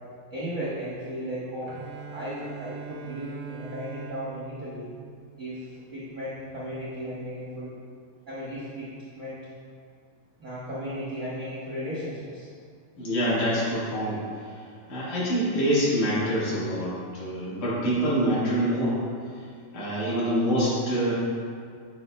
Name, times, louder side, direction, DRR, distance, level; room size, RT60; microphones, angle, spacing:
voice 1, 0.3-1.8 2.1-4.9 5.4-7.7 8.3-9.4 10.4-12.5, equal, 65° right, -9 dB, 0.7 m, -35 dB
Bowed string instrument, 1.6-5.7, right 7 dB, 80° right, 1.5 m, -43 dB
voice 2, 13.0-14.2 14.9-19.0 19.7-21.1, equal, 70° left, -9 dB, 3.1 m, -25 dB
8.1 x 5.7 x 2.2 m, 2.2 s
omnidirectional pair, 3.5 m